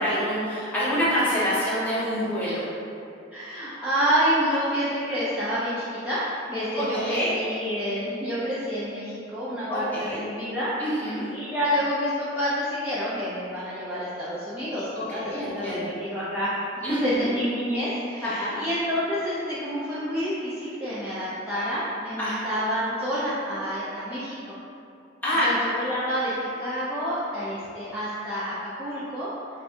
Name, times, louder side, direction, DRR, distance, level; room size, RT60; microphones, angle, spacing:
voice 1, 0.0-2.6 6.7-7.3 9.7-10.2 10.8-11.2 15.1-15.9 16.8-17.3 18.2-18.6 22.2-22.5 25.2-25.5, equal, 10° left, -11 dB, 1.1 m, -27 dB
voice 2, 3.3-6.2 6.5-10.7 11.3-16.5 16.9-24.6 25.4-26.3 26.6-29.3, equal, 5° right, -12 dB, 0.5 m, -28 dB
5.1 x 2.3 x 2.6 m, 2.7 s
head